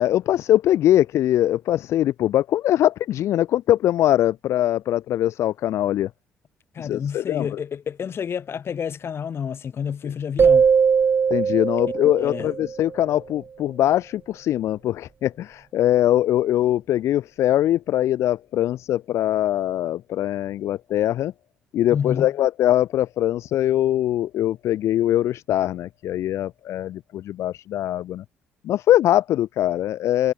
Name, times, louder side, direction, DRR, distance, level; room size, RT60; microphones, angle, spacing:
voice 1, 0.0-6.1 6.8-7.6 11.3-21.3 21.7-28.2 28.6-30.3, left 12 dB, 70° left, 0.9 m, -22 dB
voice 2, 6.7-10.7 12.2-12.5 21.9-22.3, left 7 dB, 55° left, 5.0 m, -29 dB
sound 1, 10.4-13.0, right 6 dB, 45° right, 3.7 m, -20 dB
supercardioid pair, 60°, 5 cm